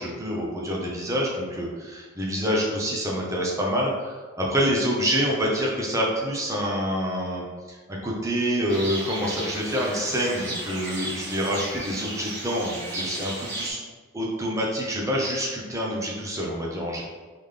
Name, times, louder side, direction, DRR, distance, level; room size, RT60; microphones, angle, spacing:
voice 1, 0.0-7.4 7.9-13.8 14.1-17.0, equal, 15° right, -3 dB, 0.8 m, -27 dB
sound 1, 8.7-13.7, right 1 dB, 55° right, 1.1 m, -34 dB
3.8 x 3.6 x 3.4 m, 1.4 s
head